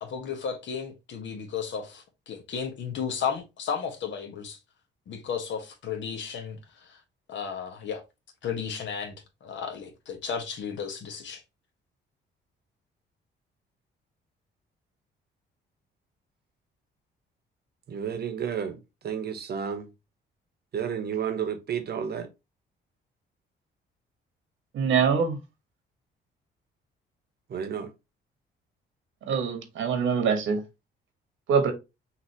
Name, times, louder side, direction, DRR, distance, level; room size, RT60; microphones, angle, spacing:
voice 1, 0.0-4.6 5.1-7.0 7.3-8.0 8.4-9.1 9.4-11.4, left 7 dB, 70° left, 1.4 m, -34 dB
voice 2, 17.9-18.8 19.0-19.9 20.7-22.3 27.5-27.9, right 7 dB, 55° right, 1.0 m, -31 dB
voice 3, 24.7-25.4 29.3-30.6 31.5-31.7, right 6 dB, 80° right, 1.4 m, -24 dB
5.9 x 2.8 x 2.9 m
cardioid pair, 90°, 20 cm